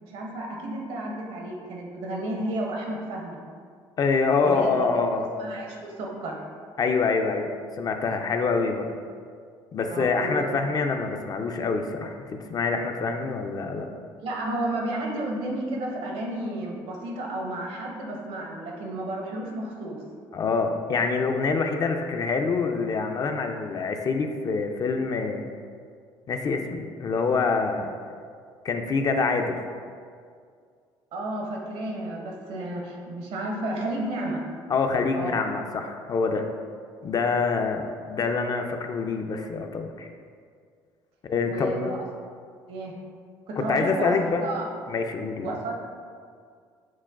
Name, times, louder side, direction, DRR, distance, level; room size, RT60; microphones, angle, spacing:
voice 1, 0.0-3.4 4.4-4.9 5.4-6.4 9.9-10.5 14.2-20.0 31.1-34.4 35.1-35.3 41.4-42.0 42.7-42.9 43.5-44.2 44.4-44.7 45.4-45.7, right 1 dB, 70° right, 0 dB, 0.7 m, -32 dB
voice 2, 4.0-5.3 6.8-7.5 7.8-8.9 9.7-13.9 20.3-25.5 26.3-27.9 28.6-29.6 34.7-36.5 37.0-40.1 41.3-42.0 43.6-44.5 44.9-45.6, left 4 dB, 40° left, 5 dB, 0.3 m, -26 dB
6.0 x 2.2 x 2.3 m, 2.1 s
hypercardioid pair, 65°, 10 cm